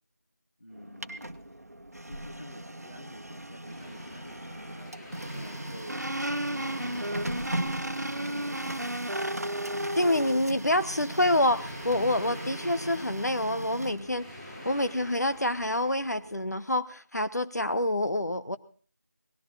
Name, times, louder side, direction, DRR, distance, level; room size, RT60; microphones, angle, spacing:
voice 1, 0.6-1.3 2.0-9.0, equal, 40° left, 2 dB, 1.9 m, -49 dB
Printer, 0.7-16.5, right 1 dB, 60° right, 1.1 m, -40 dB
sound 1, 3.6-15.9, left 1 dB, 5° left, 7.0 m, -47 dB
sound 2, 5.9-10.4, right 1 dB, 80° right, 1.4 m, -33 dB
voice 2, 10.0-14.3 14.6-18.6, left 1 dB, 70° left, 11 dB, 1.0 m, -27 dB
18.5 x 14.5 x 4.1 m, 0.43 s
figure-of-eight pair, 175°, 9 cm